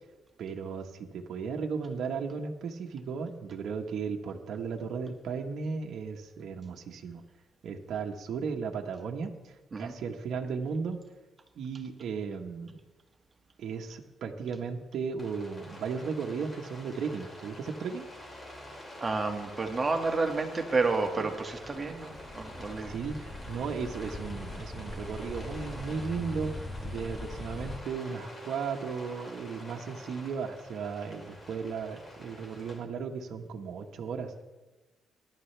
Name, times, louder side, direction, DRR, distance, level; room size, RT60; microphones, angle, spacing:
voice 1, 0.4-7.2 7.6-11.0 11.6-12.8 13.6-18.0 21.2-21.3 22.9-26.5 26.8-34.4, right 5 dB, 70° right, 1 dB, 1.3 m, -35 dB
Rain, 15.2-32.8, left 1 dB, 30° left, 4.0 m, -47 dB
voice 2, 19.0-22.9, right 3 dB, 30° right, 3 dB, 1.9 m, -30 dB
sound 1, 21.3-27.8, left 2 dB, 10° left, 1.3 m, -41 dB
21.5 x 11.5 x 3.4 m, 1.2 s
cardioid pair, 90°, 0 cm